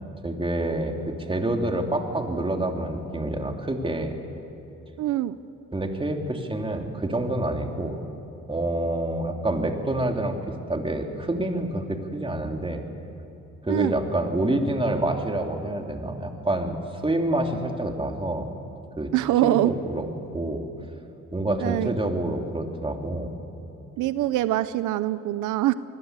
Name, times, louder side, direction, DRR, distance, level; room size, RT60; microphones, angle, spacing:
voice 1, 0.2-4.1 5.7-8.0 8.5-10.4 10.7-12.9 13.6-16.8 17.0-18.5 19.0-19.1 19.4-20.0 20.3-20.6 21.3-23.4, right 1 dB, 15° right, 3 dB, 3.0 m, -27 dB
voice 2, 5.0-5.4 13.7-13.9 19.1-19.7 21.6-21.9 24.0-25.7, right 15 dB, 85° right, 14 dB, 0.7 m, -23 dB
26.5 x 20.5 x 8.2 m, 2.9 s
cardioid pair, 90°, 30 cm